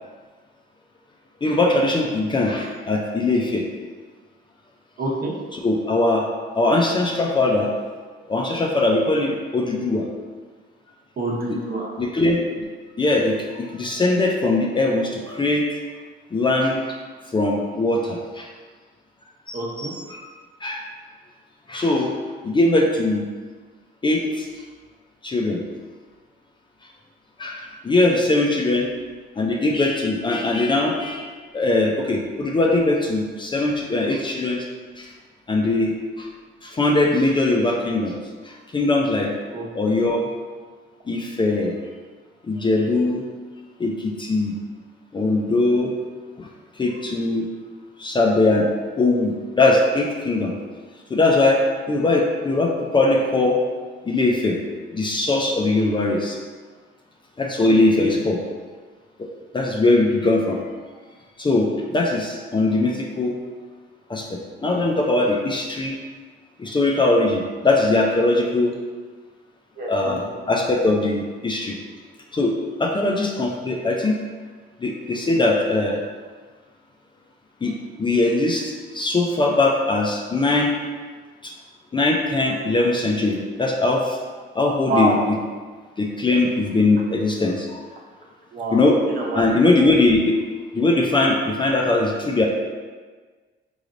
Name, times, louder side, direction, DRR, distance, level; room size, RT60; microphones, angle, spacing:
voice 1, 1.4-3.6 5.6-6.3 6.5-7.7 8.3-10.1 11.5-11.6 12.0-12.7 13.0-15.9 16.3-17.0 17.3-18.5 19.5-20.3 20.6-20.9 21.7-22.1 22.4-23.3 24.0-24.5 25.2-25.6 27.4-28.9 29.4-34.7 35.0-35.1 35.5-36.3 36.6-38.1 38.4-39.3 39.7-40.2 41.1-41.7 42.4-43.2 43.8-44.6 45.1-45.9 46.4-46.5 46.8-47.5 48.0-48.7 49.0-50.5 51.1-53.6 54.0-54.6 54.9-56.4 57.4-58.4 59.2-59.3 59.5-60.6 61.4-63.4 64.1-66.0 66.6-68.7 69.9-71.8 72.3-74.2 74.8-76.0 77.6-80.7 81.4-81.5 81.9-84.2 84.5-85.4 86.0-87.9 88.7-89.0 89.3-90.4 90.7-92.5, left 2 dB, 25° left, 0 dB, 0.4 m, -21 dB
voice 2, 5.0-5.3 11.2-11.9 19.5-19.9 39.5-39.7 57.6-58.3 69.8-70.2 84.9-85.2 88.5-89.5, right 1 dB, 50° right, -3 dB, 0.9 m, -27 dB
3.9 x 3.2 x 2.5 m, 1.5 s
cardioid pair, 90°, 20 cm